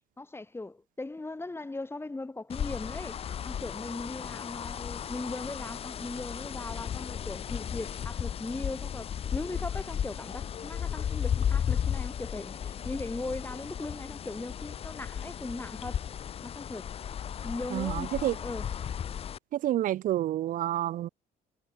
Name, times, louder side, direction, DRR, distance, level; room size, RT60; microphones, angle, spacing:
voice 1, 0.2-3.2 3.4-16.1 16.4-16.9 17.4-18.7, left 2 dB, 15° left, 3.1 m, -39 dB
sound 1, 2.5-19.4, left 8 dB, 35° left, 0.5 m, -35 dB
voice 2, 17.7-18.4 19.5-21.1, right 13 dB, 55° right, 0.4 m, -29 dB
cardioid pair, 110°, 17 cm